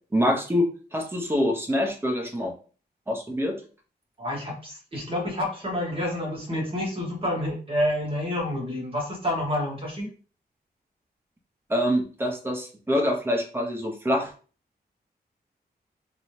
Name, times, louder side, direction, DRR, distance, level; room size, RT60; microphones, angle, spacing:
voice 1, 0.1-2.5 3.1-3.6 11.7-14.3, equal, 15° right, 2 dB, 0.7 m, -25 dB
voice 2, 4.2-10.1, left 1 dB, 35° right, -2 dB, 1.4 m, -28 dB
3.1 x 2.7 x 3.1 m, 0.38 s
wide cardioid pair, 135°, 17 cm